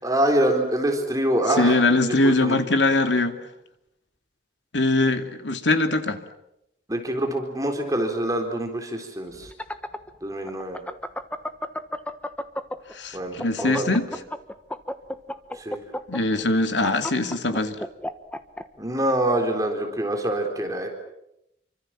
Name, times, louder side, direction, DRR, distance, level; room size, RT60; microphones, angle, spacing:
voice 1, 0.0-1.8 2.1-2.6 6.9-9.5 10.2-10.8 13.1-13.9 15.5-15.8 18.8-20.9, right 1 dB, 20° right, 3 dB, 4.0 m, -25 dB
voice 2, 1.6-3.4 4.7-6.2 12.9-14.1 16.1-17.8, left 2 dB, 90° left, 7 dB, 2.6 m, -22 dB
sound 1, 9.3-12.9 13.3-18.6, left 1 dB, 5° left, 1.2 m, -31 dB
28.0 x 25.0 x 7.6 m, 0.83 s
head